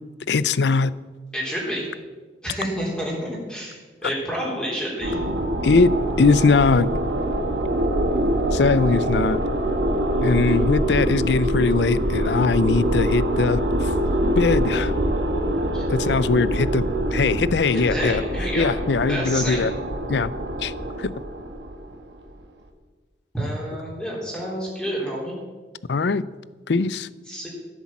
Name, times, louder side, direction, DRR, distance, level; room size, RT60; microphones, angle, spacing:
voice 1, 0.3-0.9 4.0-4.1 5.6-5.9 6.2-6.9 8.5-9.4 10.2-13.9 14.4-14.9 15.9-16.8 17.1-18.2 18.6-19.7 20.1-20.3 20.6-20.7 21.0-21.1 25.9-26.2 26.7-27.1, left 4 dB, 75° left, 18 dB, 0.5 m, -20 dB
voice 2, 1.3-1.8 2.4-3.8 4.0-5.1 15.7-15.9 17.7-18.7 19.1-19.6 23.3-25.3 27.3-27.5, equal, 5° left, -5 dB, 3.6 m, -29 dB
sound 1, 5.0-22.3, right 1 dB, 75° right, 1.6 m, -24 dB
14.5 x 8.2 x 7.4 m, 1.4 s
head